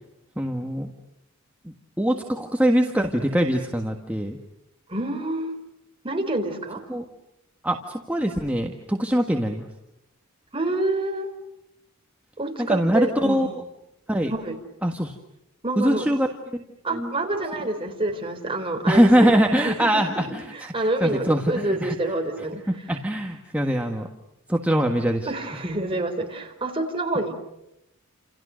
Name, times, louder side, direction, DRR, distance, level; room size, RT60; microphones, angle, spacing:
voice 1, 0.4-0.9 1.6-4.4 6.9-7.1 7.6-9.7 12.6-13.5 14.1-14.3 14.8-15.1 15.8-16.3 16.5-17.1 18.9-22.0 22.9-24.1 24.5-25.3, equal, 5° right, 2 dB, 1.7 m, -23 dB
voice 2, 4.9-5.5 6.0-6.8 10.5-11.3 12.4-13.5 14.3-14.5 15.6-16.1 16.8-19.9 20.5-22.6 25.2-27.3, right 2 dB, 25° right, 3 dB, 4.2 m, -27 dB
30.0 x 28.5 x 6.5 m, 0.85 s
head